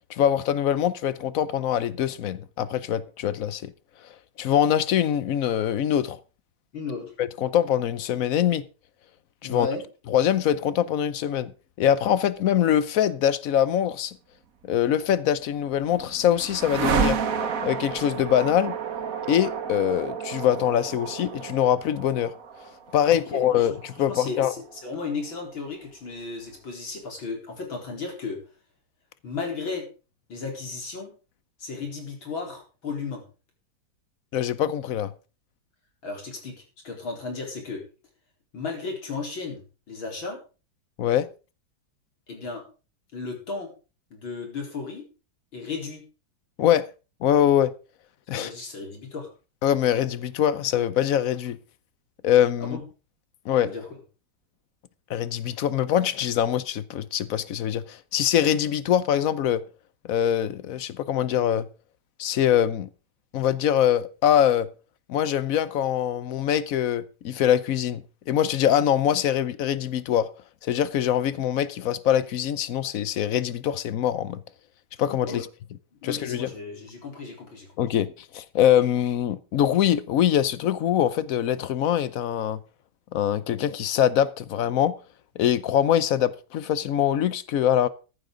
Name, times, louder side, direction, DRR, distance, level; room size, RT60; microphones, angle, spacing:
voice 1, 0.1-3.7 4.4-6.2 7.2-8.6 9.4-9.7 10.1-11.5 11.8-14.2 14.7-17.2 17.6-18.8 19.3-22.3 22.9-24.5 34.3-35.1 41.0-41.3 46.6-46.9 47.2-47.7 48.3-48.5 49.6-51.6 52.2-52.8 53.5-53.7 55.1-59.6 60.1-61.7 62.2-62.9 63.3-64.7 65.1-70.3 70.6-74.4 75.0-75.5 76.0-76.5 77.8-82.6 83.1-84.9 85.4-87.9, left 10 dB, 60° left, 0.9 m, -23 dB
voice 2, 6.7-7.1 9.4-9.8 23.1-23.7 24.1-28.4 29.2-29.9 30.3-31.1 31.6-33.2 36.0-36.5 36.8-37.8 38.5-39.6 39.9-40.4 42.3-42.6 43.1-43.7 44.1-45.1 45.5-46.0 48.3-49.3 52.6-52.8 53.6-53.8 75.2-75.4 76.0-77.9, left 4 dB, 80° left, 4.8 m, -34 dB
sound 1, 15.3-25.4, right 6 dB, 50° right, 1.5 m, -31 dB
14.5 x 11.0 x 3.9 m
omnidirectional pair, 2.1 m